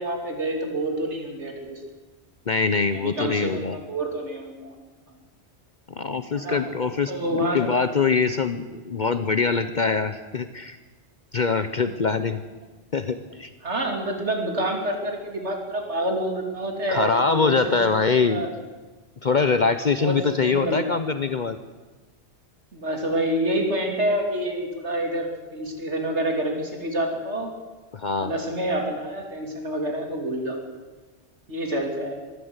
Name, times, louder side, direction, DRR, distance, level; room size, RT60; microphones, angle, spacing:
voice 1, 0.0-1.8 2.9-4.8 6.3-6.6 7.1-7.7 13.6-18.5 20.0-21.0 22.7-27.5 28.2-30.6 31.5-32.2, right 1 dB, 90° right, 2 dB, 3.4 m, -28 dB
voice 2, 2.5-3.8 5.9-10.8 11.3-12.4 12.9-13.5 16.9-18.5 19.2-21.6 27.9-28.3, left 4 dB, 45° left, 10 dB, 0.9 m, -23 dB
22.5 x 15.0 x 8.1 m, 1.2 s
omnidirectional pair, 1.1 m